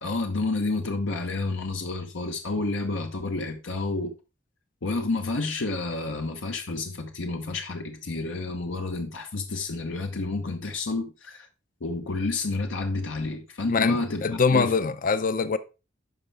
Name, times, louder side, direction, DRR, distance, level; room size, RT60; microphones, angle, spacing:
voice 1, 0.0-4.1 4.8-11.5 11.8-14.2 14.5-14.7, left 3 dB, 80° left, 0.9 m, -30 dB
voice 2, 13.7-15.6, left 5 dB, 45° left, 0.5 m, -23 dB
9.5 x 5.5 x 3.4 m
head